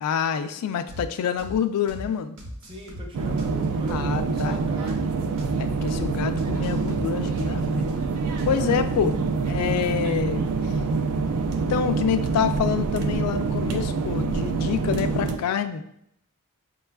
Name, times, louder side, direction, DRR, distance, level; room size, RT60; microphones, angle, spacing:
voice 1, 0.0-2.4 3.9-4.6 5.6-7.8 8.5-9.2 9.5-10.6 11.7-15.8, left 8 dB, 90° left, 13 dB, 0.3 m, -27 dB
sound 1, 0.9-1.1 1.4-1.6 1.9-2.1 2.4-4.1 4.4-4.5 4.9-5.1 5.4-5.6 5.9-6.1 6.4-7.9 8.4-8.8, equal, 70° right, 0.8 m, -38 dB
voice 2, 2.6-5.1 8.6-9.0, equal, 25° right, 1 dB, 0.5 m, -40 dB
sound 2, 3.1-15.4, right 4 dB, 85° right, 0.4 m, -26 dB
5.2 x 2.3 x 2.2 m, 0.74 s
head